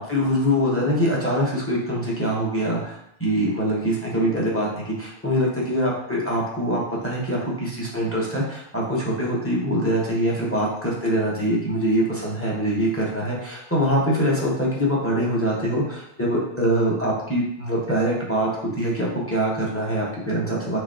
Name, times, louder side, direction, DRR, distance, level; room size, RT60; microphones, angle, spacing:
voice 1, 0.0-18.5 18.8-20.8, equal, 10° left, -4 dB, 0.9 m, -24 dB
6.3 x 2.7 x 2.7 m, 0.74 s
omnidirectional pair, 1.6 m